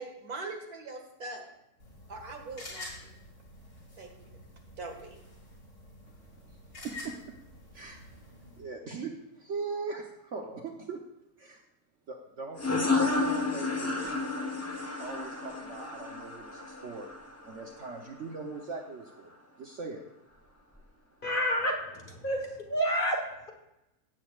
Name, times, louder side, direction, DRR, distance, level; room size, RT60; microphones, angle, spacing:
voice 1, 0.0-1.5 2.1-2.9 4.0-4.1 4.8-5.2, right 3 dB, 70° right, 2 dB, 2.3 m, -41 dB
sound 1, 1.8-8.6, left 2 dB, 90° left, 4.3 m, -48 dB
voice 2, 6.8-7.2 7.7-8.0 8.6-11.0 11.4-11.6 12.1-12.6 13.0-14.0 15.0-17.1 17.4-20.0, right 4 dB, 55° right, 2 dB, 1.2 m, -40 dB
sound 2, 12.6-17.9, left 3 dB, 10° left, 0.8 m, -31 dB
voice 3, 21.2-23.2, equal, 35° left, 1 dB, 1.5 m, -29 dB
16.5 x 8.4 x 2.4 m, 0.90 s
omnidirectional pair, 1.6 m